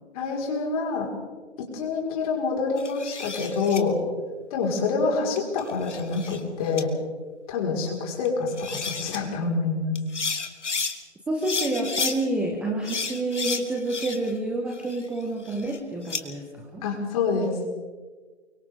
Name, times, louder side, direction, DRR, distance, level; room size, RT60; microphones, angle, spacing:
voice 1, 0.1-1.1 1.6-4.0 4.5-6.9 7.5-10.0 16.8-17.5, left 4 dB, 30° left, -1 dB, 5.3 m, -26 dB
sound 1, 2.8-3.8 5.4-6.4 6.8-6.9 8.2-8.3 8.6-9.2 9.9-10.9 11.4-12.2 12.8-14.4 14.7-16.2, left 5 dB, 85° left, 2.4 m, -32 dB
voice 2, 11.3-16.8, right 2 dB, 5° right, 1 dB, 0.9 m, -28 dB
30.0 x 24.0 x 3.8 m, 1.4 s
hypercardioid pair, 150°, 35 cm